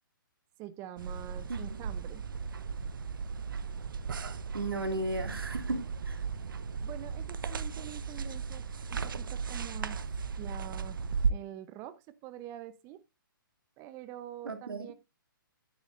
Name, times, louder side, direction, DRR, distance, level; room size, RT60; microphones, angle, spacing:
voice 1, 0.6-2.2 6.8-10.0 10.4-11.0 11.3-13.0 13.8-14.9, right 12 dB, 25° right, 0.7 m, -45 dB
sound 1, 1.0-11.3, right 5 dB, 70° right, 0.8 m, -36 dB
voice 2, 4.5-6.2 14.4-14.9, right 2 dB, 85° right, 2.3 m, -35 dB
10.0 x 9.6 x 2.6 m
hypercardioid pair, 135°, 12 cm